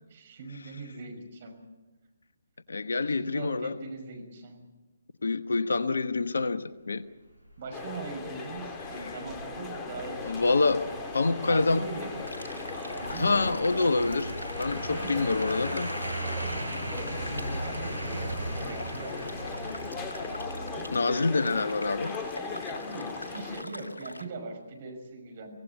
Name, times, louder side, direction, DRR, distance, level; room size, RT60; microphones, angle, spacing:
voice 1, 0.1-1.6 3.1-4.6 7.6-11.0 11.4-12.3 12.9-14.0 14.8-15.3 17.4-19.9 20.2-20.9 21.4-21.7 22.8-25.6, right 3 dB, 40° right, 6.2 m, -41 dB
voice 2, 2.7-3.8 5.2-7.0 9.0-9.2 10.2-10.9 11.1-11.8 13.1-14.3 14.6-15.9 20.9-22.2, left 3 dB, 65° left, 1.2 m, -26 dB
sound 1, 7.5-22.4 22.7-22.8, right 1 dB, 85° right, 4.8 m, -38 dB
sound 2, 7.7-23.6, left 4 dB, 15° left, 1.7 m, -39 dB
sound 3, 12.3-24.2, left 1 dB, 80° left, 2.0 m, -44 dB
25.5 x 17.0 x 8.5 m
figure-of-eight pair, 140°, 0 cm